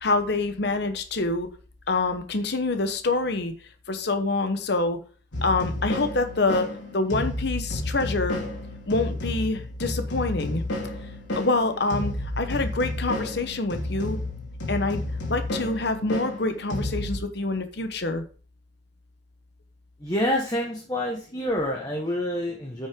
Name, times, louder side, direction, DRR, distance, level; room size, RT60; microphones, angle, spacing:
voice 1, 0.0-1.5 1.9-3.5 3.9-5.0 5.4-6.7 6.9-8.4 8.9-10.6 11.4-14.2 14.7-15.0 15.3-18.2, left 3 dB, 60° left, 8 dB, 1.0 m, -26 dB
sound 1, 5.3-17.2, left 1 dB, 75° left, 3.0 m, -31 dB
voice 2, 20.0-22.9, left 1 dB, 20° left, -1 dB, 1.4 m, -27 dB
9.1 x 6.3 x 3.7 m, 0.39 s
head